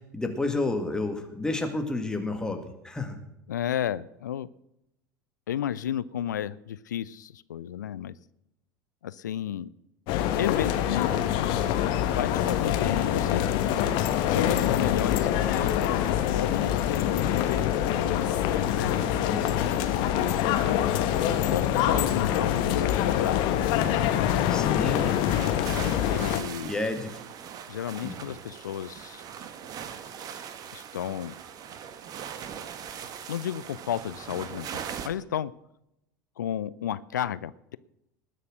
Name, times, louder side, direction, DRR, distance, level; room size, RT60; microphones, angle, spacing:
voice 1, 0.1-3.2 19.1-19.5 24.5-25.2 26.6-27.2 28.0-28.2, left 2 dB, 5° left, 5 dB, 2.1 m, -30 dB
voice 2, 3.5-4.5 5.5-8.1 9.0-9.7 10.4-11.1 12.1-13.5 14.2-18.9 19.3-19.8 20.2-20.4 21.4-23.4 26.1-26.7 27.7-29.2 30.7-31.3 33.3-35.5 36.4-37.8, left 10 dB, 70° left, 18 dB, 0.4 m, -32 dB
sound 1, 10.1-26.4, left 11 dB, 50° left, 1.3 m, -25 dB
sound 2, 24.9-35.1, right 8 dB, 40° right, 1.2 m, -40 dB
19.5 x 6.7 x 6.5 m, 0.83 s
figure-of-eight pair, 75°, 10 cm